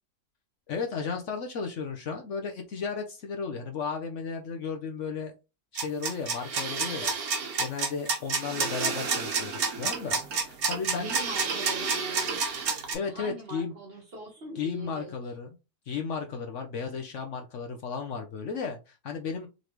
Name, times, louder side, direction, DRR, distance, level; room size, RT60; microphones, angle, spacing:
voice 1, 0.7-5.3 5.7-11.1 12.9-13.7 14.6-15.5 15.9-19.5, left 5 dB, 60° left, 0.9 m, -34 dB
sound 1, 5.8-13.0, right 5 dB, 70° right, 1.5 m, -29 dB
voice 2, 10.9-12.4 12.9-15.2, right 2 dB, 45° right, 1.0 m, -41 dB
3.9 x 3.3 x 2.9 m
omnidirectional pair, 1.7 m